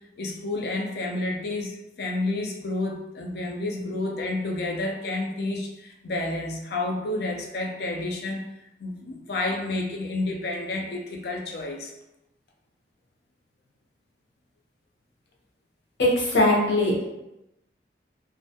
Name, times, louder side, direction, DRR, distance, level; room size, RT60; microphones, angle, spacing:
voice 1, 0.2-8.4 8.8-11.9, left 2 dB, 65° left, 1 dB, 0.4 m, -30 dB
voice 2, 16.0-17.1, left 1 dB, 85° left, -4 dB, 0.8 m, -21 dB
2.2 x 2.1 x 2.7 m, 0.93 s
head